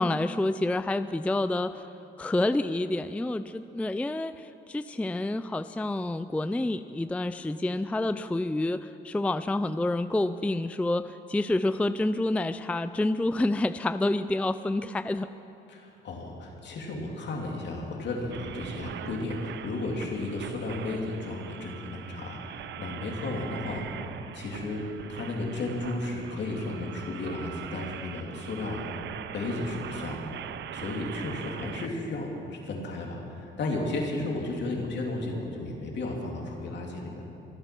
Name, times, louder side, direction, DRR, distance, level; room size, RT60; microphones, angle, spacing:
voice 1, 0.0-1.8 2.2-15.3, left 2 dB, 5° left, 12 dB, 0.4 m, -28 dB
voice 2, 15.7-23.9 24.3-28.9 29.3-37.3, left 2 dB, 60° left, 0 dB, 3.1 m, -34 dB
sound 1, 18.3-31.9, right 9 dB, 65° right, 0.7 m, -41 dB
24.5 x 9.0 x 6.1 m, 2.8 s
cardioid pair, 90°, 20 cm